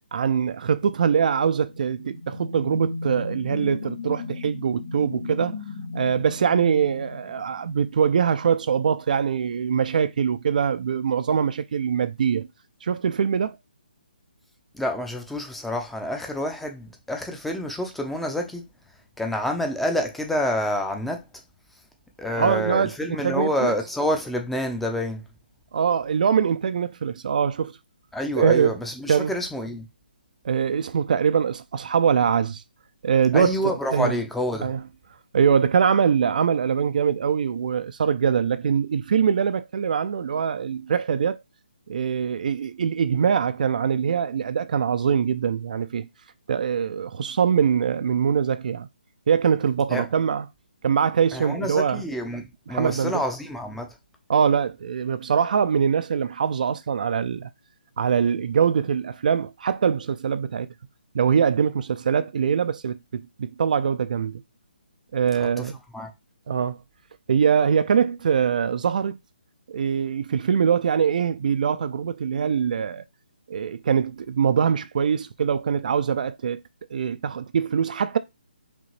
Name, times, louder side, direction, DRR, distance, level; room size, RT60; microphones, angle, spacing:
voice 1, 0.1-5.5 5.9-12.5 12.8-13.6 22.4-23.7 25.7-27.7 28.4-28.7 29.1-29.3 30.4-32.6 33.0-33.5 33.9-34.2 34.6-34.8 35.3-41.4 41.9-46.1 46.5-48.9 49.3-50.5 50.8-52.0 52.7-53.1 54.3-57.5 58.0-60.7 61.1-64.4 65.1-65.8 66.5-66.8 67.3-69.2 69.7-73.0 73.5-76.6 76.9-78.2, right 7 dB, 50° right, 0.3 m, -23 dB
sound 1, 1.7-8.0, left 3 dB, 50° left, 2.0 m, -36 dB
voice 2, 14.7-18.6 19.2-21.2 22.2-25.2 28.1-29.9 33.3-34.8 49.9-50.1 51.3-53.9 65.4-66.1, left 1 dB, 5° left, 0.5 m, -28 dB
5.1 x 2.8 x 3.0 m
figure-of-eight pair, 145°, 5 cm